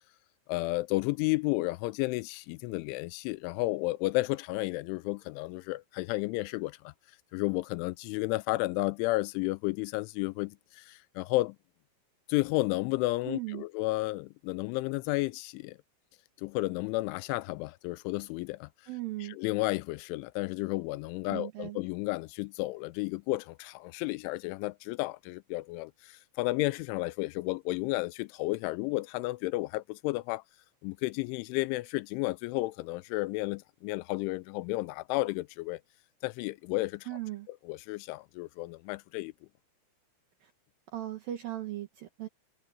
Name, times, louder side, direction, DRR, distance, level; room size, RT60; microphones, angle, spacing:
voice 1, 0.5-6.9 7.3-11.6 12.3-15.8 16.4-18.7 19.3-30.4 30.8-35.8 36.2-37.1 37.5-39.3, left 21 dB, 85° left, 2.9 m, -32 dB
voice 2, 13.3-13.7 18.9-19.4 21.3-21.8 37.1-37.5 40.4-40.5 40.9-42.3, right 15 dB, 75° right, 2.1 m, -38 dB
omnidirectional pair, 5.6 m